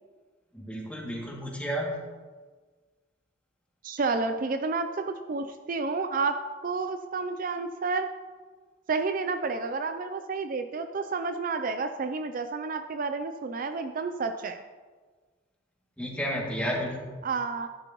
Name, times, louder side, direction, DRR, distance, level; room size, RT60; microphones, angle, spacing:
voice 1, 0.5-2.0 16.0-17.1, equal, 5° left, -4 dB, 2.3 m, -32 dB
voice 2, 3.8-6.4 6.6-8.1 8.9-14.6 17.2-17.7, right 4 dB, 50° right, 7 dB, 0.5 m, -30 dB
13.0 x 10.5 x 3.0 m, 1.4 s
head